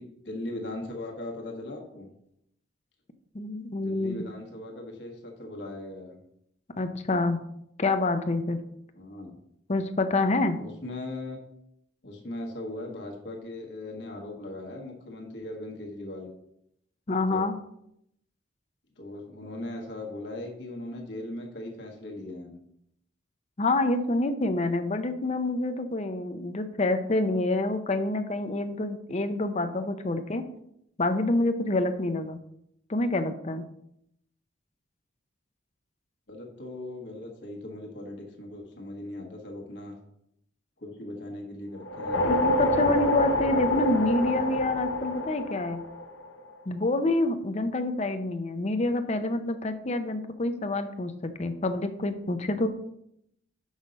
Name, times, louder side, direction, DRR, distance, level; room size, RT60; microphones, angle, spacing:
voice 1, 0.0-2.1 3.7-6.2 8.9-9.4 10.5-11.4 12.0-16.3 17.3-17.5 19.0-22.6 36.3-40.0 40.8-42.3, left 1 dB, 60° left, 0 dB, 1.4 m, -39 dB
voice 2, 3.3-4.2 6.8-7.4 7.8-8.6 9.7-10.6 17.1-17.6 23.6-30.4 31.0-32.4 32.9-33.7 42.2-45.8 46.7-52.7, left 2 dB, 35° left, 9 dB, 0.6 m, -27 dB
sound 1, 41.8-46.4, left 1 dB, 80° left, 0.9 m, -27 dB
6.4 x 5.4 x 5.1 m, 0.76 s
head